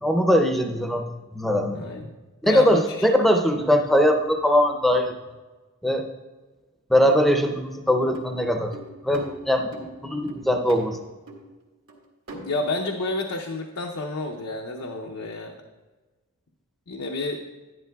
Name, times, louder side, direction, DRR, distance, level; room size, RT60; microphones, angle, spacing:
voice 1, 0.0-1.9 2.4-5.1 5.8-6.1 6.9-8.7 9.0-11.0, equal, ahead, 5 dB, 0.6 m, -21 dB
voice 2, 1.7-2.1 2.4-3.1 12.3-15.6 16.9-17.4, left 2 dB, 90° left, 2 dB, 0.7 m, -30 dB
sound 1, 8.1-9.9 10.3-10.9 11.3-11.5 11.9-12.0 12.3-12.4 12.8-13.0, right 2 dB, 65° right, 1.7 m, -41 dB
11.0 x 10.5 x 2.3 m, 1.2 s
head